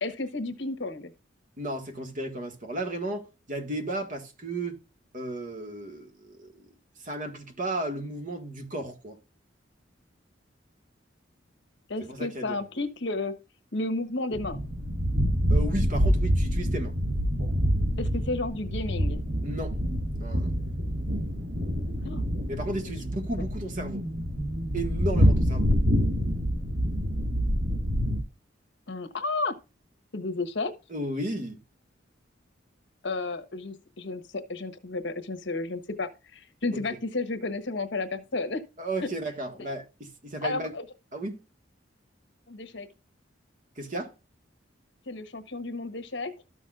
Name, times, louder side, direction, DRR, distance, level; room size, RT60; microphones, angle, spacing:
voice 1, 0.0-1.1 11.9-13.3 13.7-14.6 18.0-19.2 22.0-22.3 23.4-23.5 28.9-29.5 30.1-30.7 33.0-38.6 39.0-39.1 40.4-40.8 42.5-42.9 45.1-46.3, left 2 dB, 65° left, 1.2 m, -32 dB
voice 2, 1.6-4.8 5.1-6.5 7.0-9.2 12.0-12.6 15.5-17.0 19.4-19.8 20.2-20.5 22.5-24.1 24.7-25.7 30.9-31.6 36.7-36.8 38.8-40.7 41.1-41.4 43.8-44.1, right 1 dB, 45° right, 1.7 m, -34 dB
sound 1, 14.3-28.2, equal, 70° right, 1.5 m, -26 dB
13.0 x 6.2 x 2.4 m
head